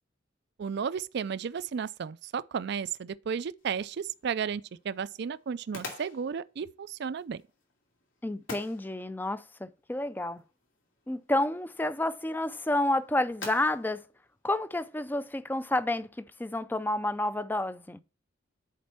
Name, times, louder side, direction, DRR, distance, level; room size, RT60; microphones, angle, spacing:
voice 1, 0.6-7.4, right 6 dB, 55° right, 0.4 m, -33 dB
sound 1, 3.6-15.3, left 3 dB, 80° left, 2.6 m, -49 dB
voice 2, 8.2-10.4 11.1-14.0 14.4-18.0, left 1 dB, 10° left, 0.4 m, -30 dB
10.5 x 4.3 x 4.4 m
head